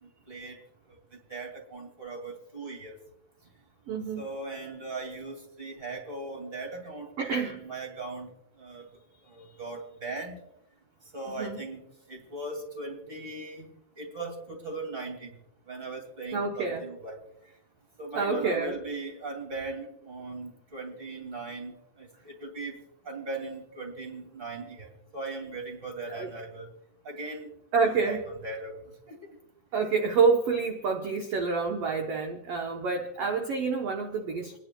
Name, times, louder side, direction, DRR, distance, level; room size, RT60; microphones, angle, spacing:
voice 1, 0.0-0.6 1.3-3.0 4.2-8.3 8.6-8.8 9.3-10.4 11.1-11.8 12.1-13.7 14.0-15.3 15.7-17.2 18.0-26.7 27.0-27.5 27.8-29.3, right 2 dB, 20° right, 2 dB, 2.2 m, -39 dB
voice 2, 3.9-4.2 7.2-7.6 11.4-11.6 16.3-16.8 18.1-18.7 26.1-26.3 27.7-28.2 29.7-34.6, right 5 dB, 65° right, 2 dB, 1.7 m, -27 dB
29.0 x 10.5 x 2.3 m, 0.83 s
omnidirectional pair, 3.7 m